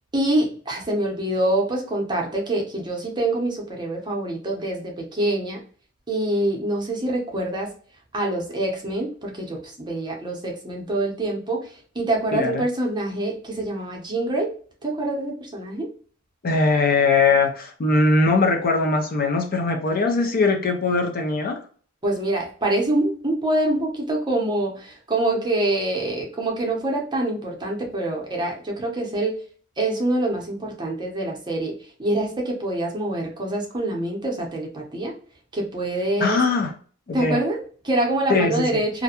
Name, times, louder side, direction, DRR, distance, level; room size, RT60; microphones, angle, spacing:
voice 1, 0.1-5.6 6.1-7.7 8.1-14.5 14.8-15.9 22.0-29.4 29.8-35.1 35.5-36.4 37.1-39.0, right 1 dB, 20° right, -1 dB, 0.7 m, -25 dB
voice 2, 12.3-12.6 16.4-21.6 36.2-36.7 37.1-37.4 38.3-38.7, left 3 dB, 45° left, 3 dB, 0.5 m, -20 dB
2.5 x 2.2 x 2.7 m, 0.43 s
head